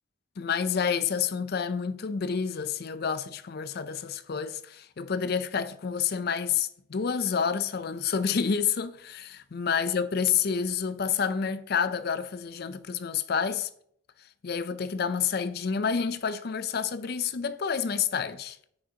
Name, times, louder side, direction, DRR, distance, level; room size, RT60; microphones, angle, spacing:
voice 1, 0.4-13.7 14.4-18.6, left 6 dB, 50° left, 0.4 m, -29 dB
8.7 x 6.3 x 2.8 m
head